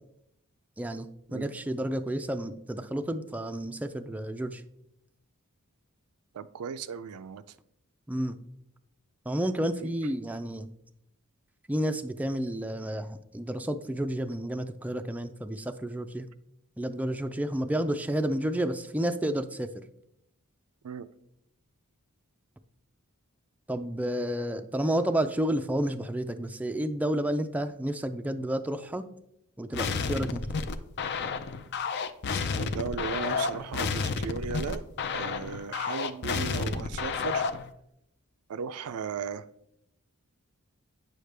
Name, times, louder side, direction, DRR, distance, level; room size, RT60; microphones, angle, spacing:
voice 1, 0.8-4.6 8.1-8.4 9.3-10.7 11.7-16.3 16.8-19.7 23.7-29.1 29.6-30.5, right 1 dB, 5° right, 0.3 m, -31 dB
voice 2, 6.3-7.4 9.8-9.9 20.8-21.1 32.5-34.8 35.1-37.4 38.5-39.5, right 6 dB, 80° right, 0.4 m, -36 dB
sound 1, 29.7-37.7, left 5 dB, 50° left, 0.5 m, -31 dB
9.1 x 6.5 x 3.3 m
head